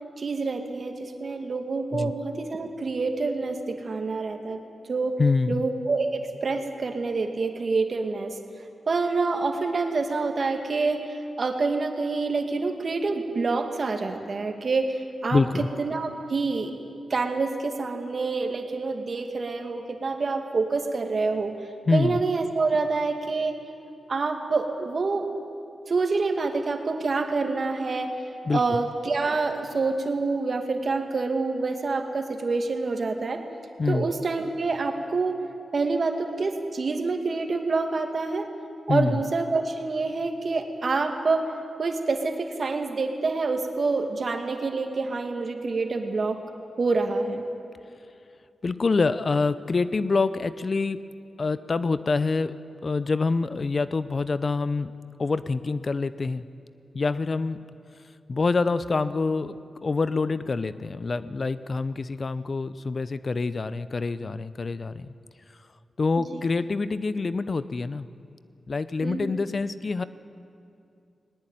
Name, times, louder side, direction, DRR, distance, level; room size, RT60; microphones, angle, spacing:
voice 1, 0.2-4.6 4.9-5.2 5.5-8.4 8.9-15.4 15.8-16.7 17.1-21.5 21.9-23.6 24.1-25.3 25.9-28.2 28.5-33.4 33.9-35.4 35.7-38.5 38.9-41.5 41.8-46.4 46.8-47.4 66.3-66.4 69.0-69.3, right 3 dB, 60° right, 5 dB, 2.3 m, -27 dB
voice 2, 5.2-5.6 15.3-15.7 21.9-22.2 28.5-28.8 33.8-34.1 38.9-39.2 48.6-51.0 51.4-52.5 52.8-54.9 55.2-56.4 56.9-57.6 58.3-65.1 66.0-68.1 68.7-70.0, left 4 dB, 50° left, 14 dB, 0.8 m, -26 dB
19.5 x 19.5 x 9.2 m, 2.6 s
cardioid pair, 50°, 0 cm